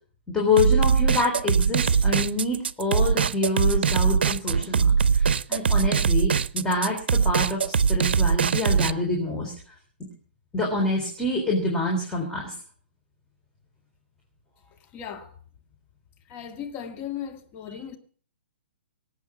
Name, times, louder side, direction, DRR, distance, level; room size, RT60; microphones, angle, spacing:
voice 1, 0.3-9.5 10.5-12.5 17.7-17.8, left 2 dB, 10° left, 3.8 m, -26 dB
sound 1, 0.6-8.9, right 6 dB, 65° right, 0.6 m, -21 dB
voice 2, 14.9-15.3 16.3-18.0, left 9 dB, 30° left, 1.8 m, -36 dB
18.5 x 8.5 x 7.2 m
figure-of-eight pair, 120°, 6 cm